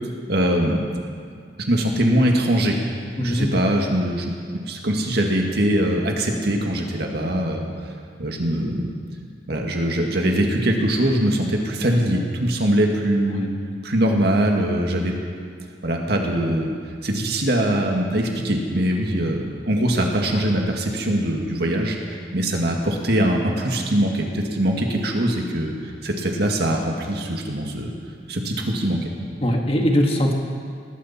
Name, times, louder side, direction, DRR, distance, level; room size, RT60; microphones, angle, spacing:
voice 1, 0.3-0.9 1.6-2.8 3.2-4.3 4.7-7.6 8.2-8.9 9.5-13.5 13.8-15.1 15.8-16.7 17.0-27.9 28.3-29.1, right 1 dB, 65° right, 1 dB, 1.9 m, -22 dB
voice 2, 3.2-3.6 13.3-13.5 29.4-30.3, equal, 35° left, 1 dB, 1.7 m, -21 dB
19.5 x 14.5 x 4.3 m, 2.2 s
head